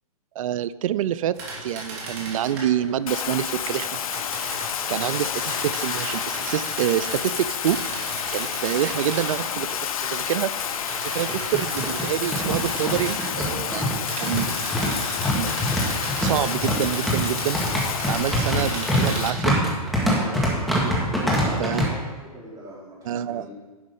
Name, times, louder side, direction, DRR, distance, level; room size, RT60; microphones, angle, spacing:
voice 1, 0.4-4.0 4.9-7.8 8.3-10.5 11.0-14.5 15.3-15.6 16.2-17.6 18.1-19.6 21.6-21.9 23.1-23.5, right 11 dB, 60° right, 17 dB, 0.5 m, -27 dB
sound 1, 1.3-2.9 3.5-9.7 10.0-13.3 14.0-19.4 20.1-20.5, right 2 dB, 35° right, 3.0 m, -36 dB
Bathtub (filling or washing), 3.1-19.3, left 8 dB, 65° left, 0.7 m, -30 dB
sound 2, 9.8-9.9 10.2-10.3 11.1-21.9, equal, ahead, 2.0 m, -25 dB
voice 2, 21.1-21.6 21.8-23.5, right 1 dB, 15° right, -5 dB, 3.7 m, -40 dB
11.0 x 6.2 x 5.5 m, 1.3 s
hypercardioid pair, 130°, 20 cm